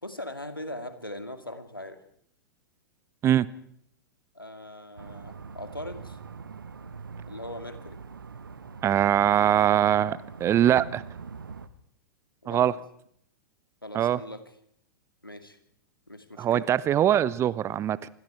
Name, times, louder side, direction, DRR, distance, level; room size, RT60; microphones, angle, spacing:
voice 1, 0.0-2.0 4.3-6.2 7.3-8.0 12.4-12.7 13.8-14.4 15.2-15.6 16.1-16.7, left 1 dB, 90° left, 9 dB, 2.4 m, -40 dB
sound 1, 5.0-11.7, right 5 dB, 75° right, 1.4 m, -43 dB
voice 2, 8.8-11.0 12.5-12.7 13.9-14.2 16.4-18.1, right 11 dB, 25° right, 20 dB, 0.8 m, -22 dB
27.5 x 24.0 x 4.6 m, 0.68 s
figure-of-eight pair, 100°, 11 cm